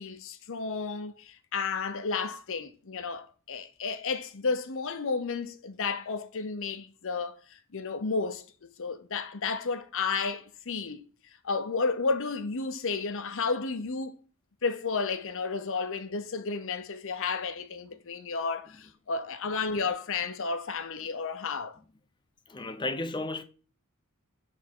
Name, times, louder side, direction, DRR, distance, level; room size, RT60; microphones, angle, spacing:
voice 1, 0.0-8.4 8.8-14.2 14.6-21.8, left 4 dB, 65° left, 0.7 m, -32 dB
voice 2, 22.5-23.4, left 2 dB, 20° left, 0.6 m, -33 dB
7.2 x 3.6 x 4.4 m
head